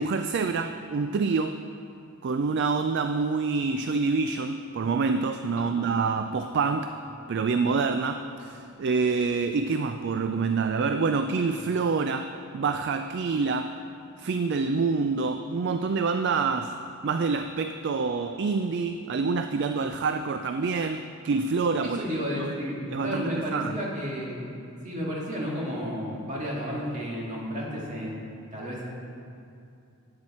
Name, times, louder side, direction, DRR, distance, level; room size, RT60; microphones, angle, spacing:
voice 1, 0.0-1.6 2.2-7.0 7.3-13.8 14.2-16.8 17.0-22.0 22.4-22.5 22.9-23.7, right 4 dB, 50° right, 8 dB, 0.3 m, -27 dB
voice 2, 5.5-5.9 21.8-24.5 24.8-28.2 28.5-28.8, equal, 35° right, -5 dB, 2.1 m, -32 dB
12.0 x 8.8 x 4.2 m, 2.6 s
head